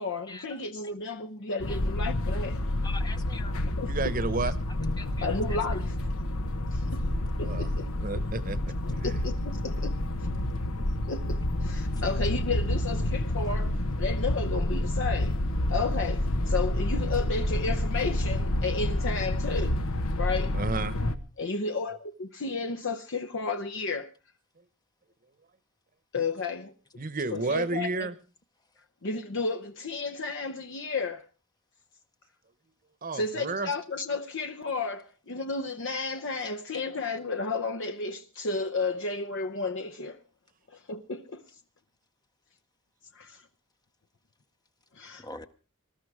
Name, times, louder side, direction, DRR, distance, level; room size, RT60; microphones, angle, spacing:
voice 1, 0.0-2.7 3.6-3.9 5.0-6.0 6.7-7.0 7.4-7.9 9.0-10.0 11.1-15.4 15.7-19.8 20.2-20.6 21.4-24.1 26.1-26.7 27.3-28.1 29.0-31.3 33.1-40.2 40.7-41.4 43.1-43.4 44.9-45.3, left 3 dB, 60° left, 0.8 m, -32 dB
sound 1, 1.6-21.2, left 1 dB, 90° left, 1.3 m, -29 dB
voice 2, 2.8-3.5 5.0-5.4 45.2-45.5, left 3 dB, 20° left, 0.7 m, -42 dB
voice 3, 3.8-4.5 7.4-7.7 8.0-8.6 10.1-10.2 11.0-11.1 20.5-21.0 27.0-28.1 33.0-33.7, right 3 dB, 40° right, 1.0 m, -31 dB
20.0 x 12.5 x 4.8 m
head